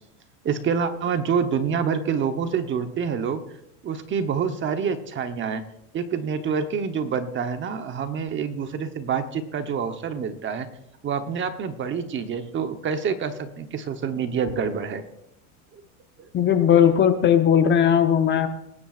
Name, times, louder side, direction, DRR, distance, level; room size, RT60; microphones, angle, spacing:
voice 1, 0.4-3.4 3.8-5.6 5.9-10.7 11.0-15.0 15.7-15.8, right 6 dB, 25° right, 8 dB, 1.0 m, -27 dB
voice 2, 16.3-18.5, left 9 dB, 25° left, 7 dB, 0.9 m, -18 dB
21.5 x 10.0 x 2.5 m, 0.81 s
supercardioid pair, 135°, 43 cm